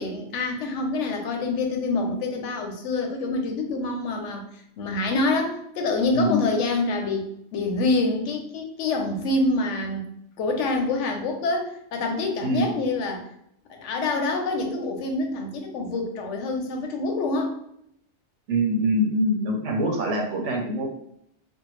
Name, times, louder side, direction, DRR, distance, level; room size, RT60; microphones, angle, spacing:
voice 1, 0.0-4.4 4.8-10.1 10.4-13.3 13.7-17.6, left 3 dB, 90° left, 3 dB, 0.9 m, -26 dB
voice 2, 6.1-6.5 12.4-12.7 18.5-20.9, equal, 90° right, 1 dB, 0.9 m, -24 dB
2.6 x 2.1 x 3.0 m, 0.72 s
omnidirectional pair, 1.2 m